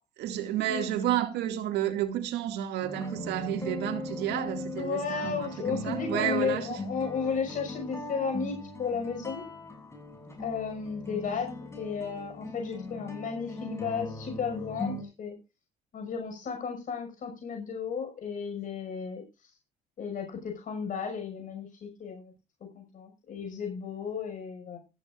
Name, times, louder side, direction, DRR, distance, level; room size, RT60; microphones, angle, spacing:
voice 1, 0.2-6.8, right 11 dB, 80° right, 2.4 m, -31 dB
sound 1, 2.8-15.0, left 2 dB, 15° left, 7.4 m, -39 dB
voice 2, 4.8-9.4 10.4-11.5 11.8-15.3 15.9-19.5 20.0-22.3 22.7-24.8, left 5 dB, 50° left, 6.1 m, -34 dB
15.0 x 14.5 x 2.6 m
cardioid pair, 110°, 17 cm